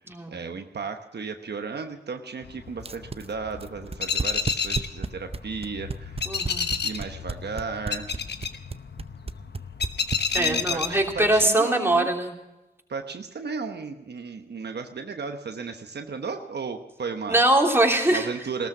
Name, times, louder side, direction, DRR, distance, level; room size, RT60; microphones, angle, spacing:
voice 1, 0.3-6.2 6.8-8.2 10.3-12.1 12.9-17.4 18.1-18.7, right 5 dB, 70° right, 5 dB, 1.1 m, -34 dB
sound 1, 2.4-11.5, left 5 dB, 75° left, 1.1 m, -31 dB
sound 2, 2.8-10.7, right 4 dB, 35° right, 0.7 m, -32 dB
voice 2, 6.2-6.7 10.3-12.3 17.3-18.3, right 1 dB, 15° right, 0 dB, 3.2 m, -22 dB
18.0 x 13.5 x 5.9 m, 0.98 s
cardioid pair, 55°, 18 cm